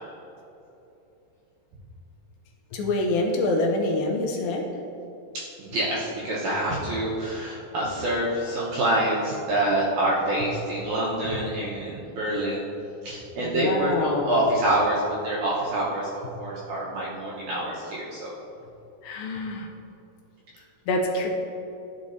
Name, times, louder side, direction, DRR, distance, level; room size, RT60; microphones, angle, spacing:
voice 1, 2.7-4.6 13.4-14.4 19.0-19.7 20.9-21.3, left 2 dB, 80° left, 1 dB, 2.4 m, -26 dB
voice 2, 5.6-12.7 13.0-18.3, right 1 dB, 70° right, -6 dB, 1.8 m, -26 dB
12.5 x 5.2 x 2.6 m, 3.0 s
omnidirectional pair, 4.5 m